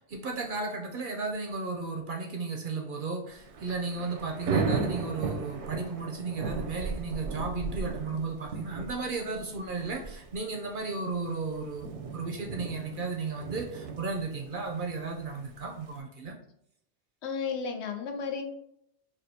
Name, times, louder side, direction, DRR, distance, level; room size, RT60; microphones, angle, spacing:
voice 1, 0.1-16.3, right 4 dB, 60° right, 2 dB, 0.6 m, -34 dB
Thunder / Rain, 3.3-16.0, right 4 dB, 85° right, 0.9 m, -36 dB
voice 2, 17.2-18.4, left 5 dB, 75° left, 5 dB, 0.8 m, -33 dB
4.9 x 2.4 x 2.7 m, 0.74 s
omnidirectional pair, 1.2 m